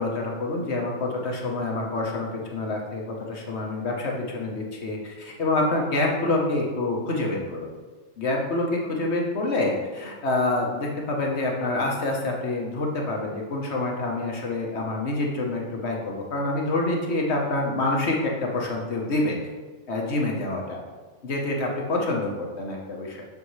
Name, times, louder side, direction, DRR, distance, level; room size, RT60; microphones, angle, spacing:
voice 1, 0.0-7.7 8.2-19.4 19.9-20.8 21.2-23.2, left 2 dB, 55° left, 0 dB, 1.4 m, -27 dB
7.1 x 6.7 x 3.2 m, 1.3 s
omnidirectional pair, 1.4 m